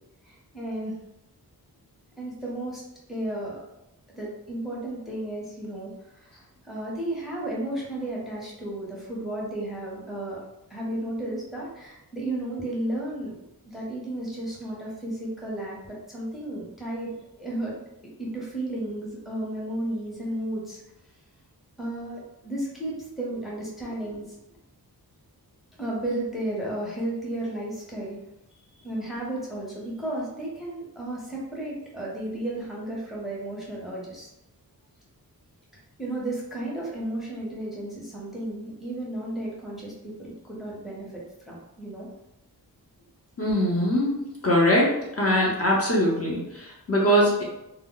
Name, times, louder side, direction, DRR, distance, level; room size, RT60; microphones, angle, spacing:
voice 1, 0.2-0.9 2.2-2.8 3.1-3.6 4.2-10.4 10.7-17.1 17.4-17.7 18.2-20.8 21.8-24.4 25.8-28.2 28.8-34.3 36.0-42.1, right 1 dB, ahead, -5 dB, 0.7 m, -33 dB
voice 2, 43.4-44.2 44.4-47.4, equal, 40° left, -4 dB, 0.7 m, -22 dB
2.1 x 2.1 x 3.7 m, 0.88 s
wide cardioid pair, 115°, 38 cm